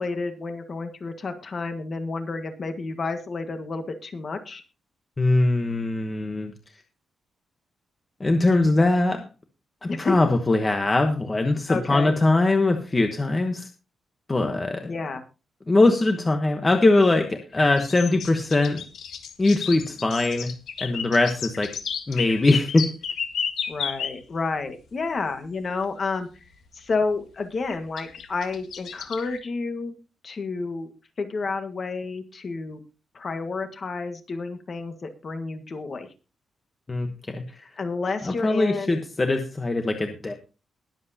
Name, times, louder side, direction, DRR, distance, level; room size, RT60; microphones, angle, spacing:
voice 1, 0.0-4.6 9.9-10.2 11.7-12.1 14.8-15.2 23.7-26.3 26.7-30.0 30.2-30.9 31.2-32.8 33.1-36.1 37.8-39.0, left 4 dB, 35° left, 7 dB, 1.6 m, -30 dB
voice 2, 5.2-6.5 8.2-9.2 9.8-13.7 14.3-14.9 15.7-18.8 19.4-20.5 20.8-21.7 22.1-22.9 36.9-37.4 38.2-40.3, left 2 dB, 20° left, 5 dB, 1.1 m, -21 dB
sound 1, 17.6-24.2 25.8-25.9 27.7-29.4, left 7 dB, 75° left, 1.7 m, -32 dB
21.0 x 7.8 x 2.8 m, 0.32 s
wide cardioid pair, 170°, 0 cm